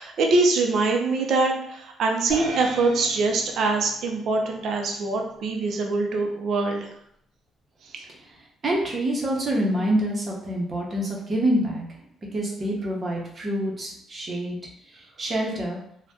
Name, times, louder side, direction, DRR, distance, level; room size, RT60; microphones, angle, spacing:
voice 1, 0.0-6.9 7.9-8.0, right 3 dB, 60° right, 2 dB, 0.5 m, -23 dB
sound 1, 2.3-4.8, right 1 dB, 85° right, 0.9 m, -37 dB
voice 2, 8.6-11.8 12.3-14.6 15.2-15.8, right 1 dB, 30° right, -2 dB, 0.7 m, -26 dB
2.6 x 2.1 x 3.4 m, 0.71 s
cardioid pair, 140°, 0 cm